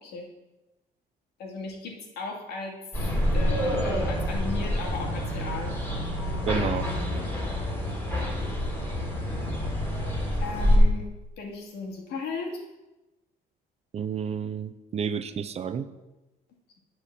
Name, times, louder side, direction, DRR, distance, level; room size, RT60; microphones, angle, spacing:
voice 1, 1.4-2.7 3.3-5.7 10.4-11.0 11.4-12.6, left 3 dB, 75° left, 1 dB, 2.2 m, -36 dB
sound 1, 2.9-10.8, equal, 15° left, 3.3 m, -27 dB
voice 2, 6.5-6.9 13.9-15.9, right 7 dB, 40° right, 12 dB, 0.6 m, -30 dB
10.0 x 4.5 x 7.4 m, 1.0 s
cardioid pair, 110°, 17 cm